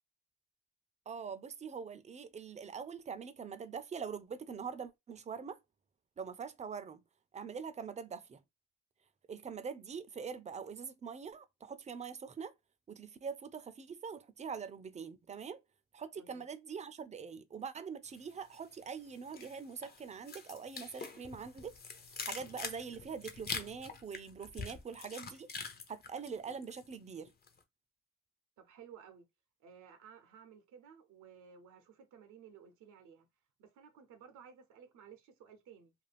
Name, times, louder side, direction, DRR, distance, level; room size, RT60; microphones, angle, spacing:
voice 1, 1.1-5.6 6.2-7.0 7.3-8.4 9.3-12.5 12.9-15.6 15.9-21.8 22.2-25.5 25.9-27.3, right 6 dB, 25° right, 0.4 m, -43 dB
voice 2, 16.2-16.5 28.6-29.3 29.6-33.3 33.6-35.9, right 7 dB, 80° right, 0.6 m, -56 dB
sound 1, 18.1-18.8 19.1-27.0 27.3-27.6, left 5 dB, 30° left, 0.6 m, -45 dB
2.5 x 2.3 x 3.2 m
cardioid pair, 90°, 30 cm